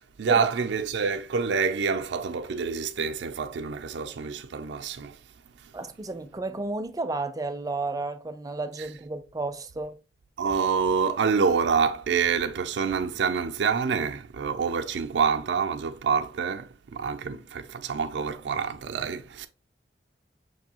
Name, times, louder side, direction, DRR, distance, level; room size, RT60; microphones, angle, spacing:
voice 1, 0.2-5.2 10.4-19.5, right 5 dB, 80° right, 0.4 m, -27 dB
voice 2, 5.7-10.0, right 2 dB, 20° right, 0.4 m, -32 dB
6.0 x 2.6 x 2.8 m
head